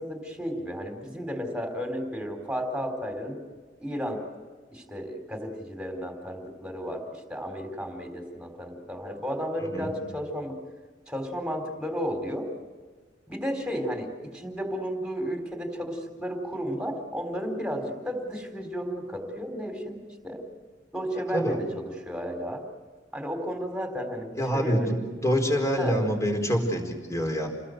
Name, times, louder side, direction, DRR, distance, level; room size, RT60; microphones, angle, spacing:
voice 1, 0.0-3.4 3.8-4.2 4.7-10.5 11.1-12.5 13.3-20.0 20.2-20.4 20.9-22.6 23.1-24.9 25.8-26.0, equal, 5° right, 4 dB, 4.0 m, -33 dB
voice 2, 24.4-25.0 25.2-27.5, equal, 15° left, 3 dB, 4.3 m, -26 dB
29.5 x 20.0 x 7.9 m, 1.4 s
head